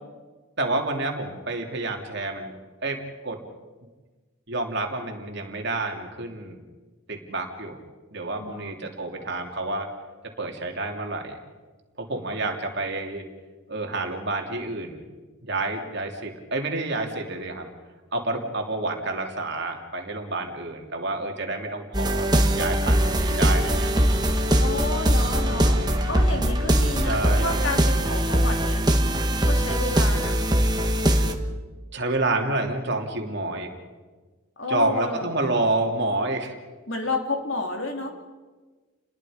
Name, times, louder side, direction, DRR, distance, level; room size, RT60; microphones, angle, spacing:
voice 1, 0.6-2.5 2.8-3.4 4.5-6.6 7.1-7.8 8.1-9.9 10.4-11.4 12.0-13.2 13.7-15.0 15.4-17.7 18.1-23.9 25.4-26.1 27.0-27.7 31.9-33.7 34.7-36.5, right 2 dB, 50° right, 2 dB, 2.9 m, -29 dB
voice 2, 8.4-8.9 24.6-28.9 29.4-30.4 34.6-35.3 36.9-38.1, left 2 dB, 65° left, 3 dB, 3.2 m, -31 dB
sound 1, 21.9-31.3, equal, 20° right, 1.4 m, -21 dB
30.0 x 21.0 x 5.1 m, 1.3 s
head